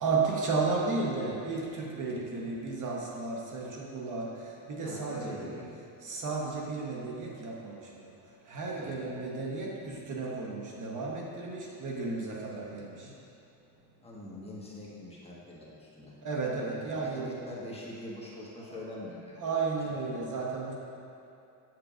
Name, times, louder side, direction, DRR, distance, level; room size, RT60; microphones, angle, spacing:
voice 1, 0.0-4.3 4.7-5.6 6.0-7.8 8.5-13.1 16.2-17.3 18.7-18.8 19.4-20.7, right 4 dB, 50° right, -2 dB, 1.0 m, -33 dB
voice 2, 4.8-5.7 8.8-9.0 12.5-12.8 14.0-16.1 16.8-19.4, left 1 dB, 15° left, -6 dB, 1.4 m, -44 dB
8.5 x 7.6 x 2.4 m, 2.7 s
cardioid pair, 125°, 40 cm